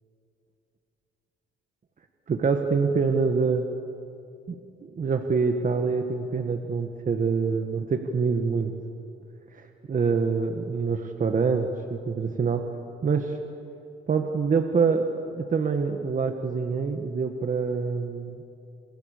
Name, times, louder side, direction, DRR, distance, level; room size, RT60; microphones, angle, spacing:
voice 1, 2.3-3.6 4.5-4.6 4.8-8.7 9.5-11.7 12.1-12.7 13.0-13.4 14.1-18.4, right 5 dB, 40° right, 5 dB, 1.9 m, -25 dB
28.5 x 28.5 x 6.9 m, 2.6 s
cardioid pair, 90°, 20 cm